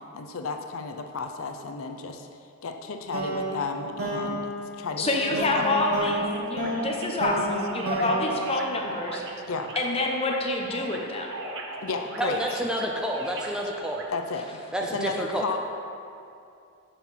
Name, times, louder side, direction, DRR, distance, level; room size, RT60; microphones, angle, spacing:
voice 1, 0.1-2.3 2.6-4.5 4.8-5.8 8.0-8.2 9.5-9.7 11.8-12.6 14.1-14.5 14.9-15.6, left 4 dB, 65° left, 5 dB, 0.5 m, -33 dB
sound 1, 3.1-9.5, right 1 dB, 80° right, 1.8 m, -31 dB
voice 2, 5.0-9.2 9.8-11.3, left 2 dB, 25° left, 0 dB, 0.8 m, -27 dB
sound 2, 5.5-14.0, right 2 dB, 55° right, 0.8 m, -40 dB
voice 3, 12.2-14.0 14.7-15.4, right 1 dB, 5° right, 0 dB, 0.4 m, -29 dB
6.9 x 5.6 x 5.7 m, 2.5 s
head